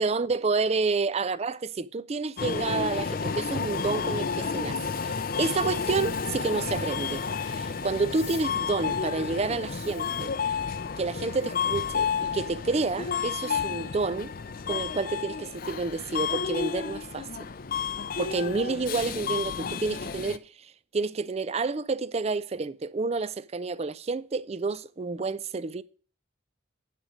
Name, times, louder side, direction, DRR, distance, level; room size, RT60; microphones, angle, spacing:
voice 1, 0.0-10.3 11.0-14.3 14.7-17.5 18.2-25.8, right 3 dB, 30° right, 0.4 m, -29 dB
Subway metro underground, 2.4-20.4, left 6 dB, 45° left, 0.5 m, -31 dB
10.0 x 5.1 x 6.3 m
head